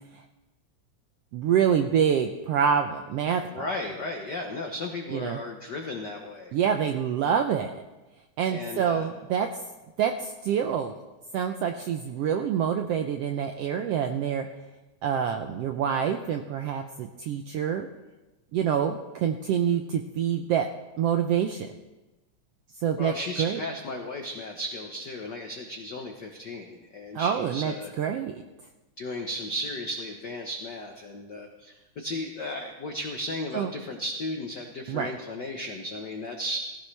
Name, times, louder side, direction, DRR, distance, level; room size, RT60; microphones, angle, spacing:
voice 1, 1.3-3.7 5.1-5.4 6.5-7.7 8.4-9.5 10.0-11.0 11.3-14.5 15.0-17.9 18.5-20.7 21.0-21.7 22.8-23.1 23.4-23.6 27.1-28.4 33.5-33.7 34.9-35.1, right 8 dB, 80° right, 5 dB, 1.4 m, -26 dB
voice 2, 3.5-6.5 8.5-9.1 23.0-27.9 29.0-36.6, left 1 dB, 80° left, 2 dB, 0.9 m, -35 dB
16.5 x 16.0 x 3.3 m, 1.1 s
omnidirectional pair, 3.5 m